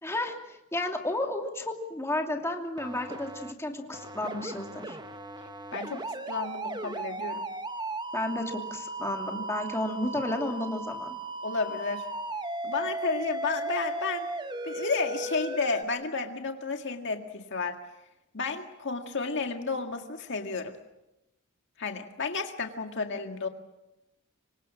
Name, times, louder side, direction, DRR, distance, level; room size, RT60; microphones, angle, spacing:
voice 1, 0.0-5.0 8.1-11.1, left 1 dB, 10° left, 2 dB, 2.8 m, -32 dB
sound 1, 2.8-3.5 3.9-15.8, right 2 dB, 20° right, 1.3 m, -36 dB
voice 2, 5.7-7.5 11.4-12.1 12.6-14.3 14.6-17.8 18.3-20.8 21.8-23.5, left 4 dB, 55° left, 4 dB, 1.9 m, -32 dB
27.0 x 24.5 x 7.4 m, 0.93 s
head